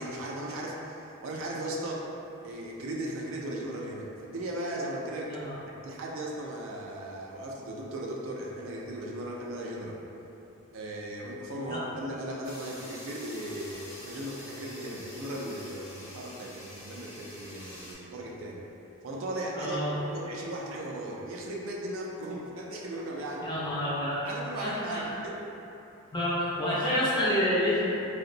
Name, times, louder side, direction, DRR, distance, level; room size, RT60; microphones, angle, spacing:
voice 1, 0.0-2.1 2.4-5.4 5.7-10.0 10.7-18.6 19.0-23.5 24.2-25.4, right 1 dB, 65° right, -2 dB, 0.4 m, -37 dB
sound 1, 12.4-17.9, left 1 dB, 80° left, 1.0 m, -46 dB
voice 2, 19.6-19.9 23.4-24.2 24.6-25.0 26.1-27.9, left 1 dB, 20° left, -8 dB, 0.5 m, -28 dB
3.7 x 2.0 x 2.5 m, 2.9 s
head